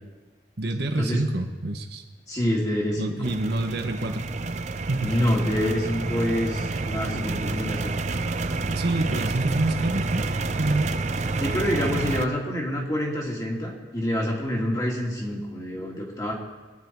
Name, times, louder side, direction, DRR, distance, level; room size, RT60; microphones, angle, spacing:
voice 1, 0.6-2.0 3.0-4.3 4.9-5.2 8.7-10.3 10.6-10.9, right 2 dB, 60° right, 4 dB, 1.2 m, -27 dB
voice 2, 2.3-3.3 5.0-8.0 11.4-16.3, left 1 dB, 20° left, -3 dB, 2.7 m, -27 dB
sound 1, 3.2-12.2, right 3 dB, 40° right, 0.6 m, -29 dB
22.5 x 9.7 x 4.7 m, 1.3 s
head